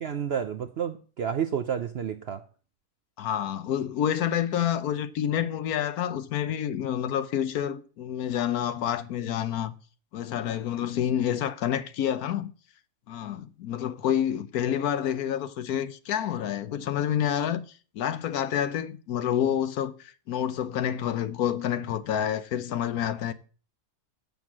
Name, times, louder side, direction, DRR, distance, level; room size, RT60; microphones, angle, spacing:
voice 1, 0.0-2.4, right 8 dB, 60° right, 0.6 m, -30 dB
voice 2, 3.2-9.7 10.1-12.5 13.1-17.6 17.9-23.3, left 10 dB, 70° left, 1.2 m, -28 dB
7.9 x 7.2 x 7.3 m
omnidirectional pair, 1.7 m